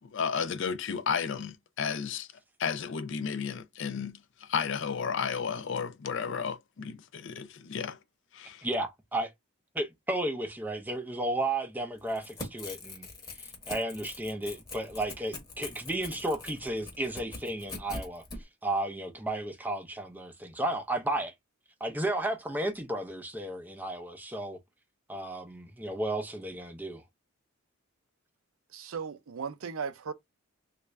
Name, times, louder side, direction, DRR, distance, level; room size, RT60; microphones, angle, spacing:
voice 1, 0.0-2.3 2.6-8.0 8.3-8.7, left 6 dB, 55° left, 0.4 m, -33 dB
voice 2, 8.6-9.3 9.7-13.1 13.4-18.2 18.6-21.3 21.8-24.6 25.1-27.0, right 1 dB, 10° right, 0.5 m, -33 dB
Crackle / Tearing, 12.0-18.4, left 3 dB, 15° left, 1.0 m, -42 dB
voice 3, 28.7-30.1, right 6 dB, 70° right, 0.5 m, -36 dB
3.3 x 2.5 x 3.2 m
head